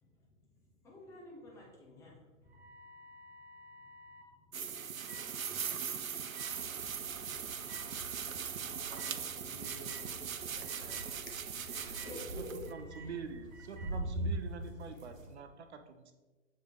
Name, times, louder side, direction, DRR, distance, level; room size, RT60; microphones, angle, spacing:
voice 1, 0.8-2.6 3.8-8.7 9.2-9.5 11.8-13.2, left 1 dB, 10° left, -3 dB, 0.7 m, -53 dB
sound 1, 2.5-4.3 5.0-5.3 6.3-6.5 7.7-7.8 8.9-9.2 9.6-10.1 10.6-11.1 11.7-12.1 12.7-13.1 13.5-13.9, right 2 dB, 15° right, 1.7 m, -54 dB
sound 2, 4.5-12.7, right 7 dB, 90° right, 0.5 m, -40 dB
sound 3, 6.4-15.3, right 1 dB, 70° right, 1.3 m, -44 dB
voice 2, 8.9-11.0 11.3-11.4, left 3 dB, 55° left, 1 dB, 1.6 m, -54 dB
voice 3, 12.3-16.1, right 5 dB, 55° right, 8 dB, 0.8 m, -45 dB
7.0 x 4.9 x 3.2 m, 1.2 s
figure-of-eight pair, 120°, 40 cm